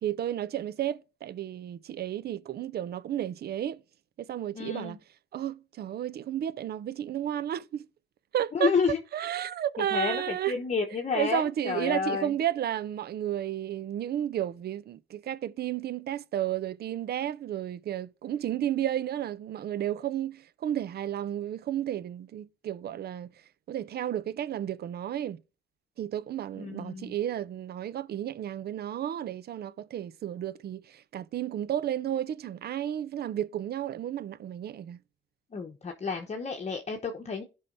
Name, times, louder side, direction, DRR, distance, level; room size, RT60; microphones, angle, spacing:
voice 1, 0.0-3.8 4.2-5.0 5.3-7.9 8.3-8.7 9.1-10.6 11.1-23.3 23.7-25.4 26.0-35.0, right 11 dB, 55° right, 0.5 m, -32 dB
voice 2, 4.5-5.0 8.5-9.0 9.8-12.3 26.6-27.1 35.5-37.4, left 5 dB, 35° left, 1.0 m, -30 dB
15.5 x 5.5 x 2.6 m
cardioid pair, 90°, 20 cm